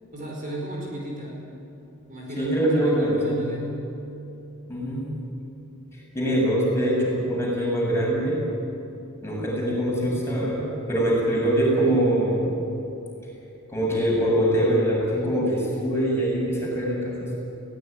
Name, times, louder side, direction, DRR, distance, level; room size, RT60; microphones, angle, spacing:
voice 1, 0.1-1.4 2.1-3.8, equal, 40° right, -2 dB, 5.2 m, -34 dB
voice 2, 2.4-3.4 4.7-5.1 6.1-8.4 9.2-12.6 13.7-17.4, right 1 dB, 10° left, -4 dB, 7.2 m, -23 dB
22.0 x 17.5 x 9.8 m, 2.9 s
head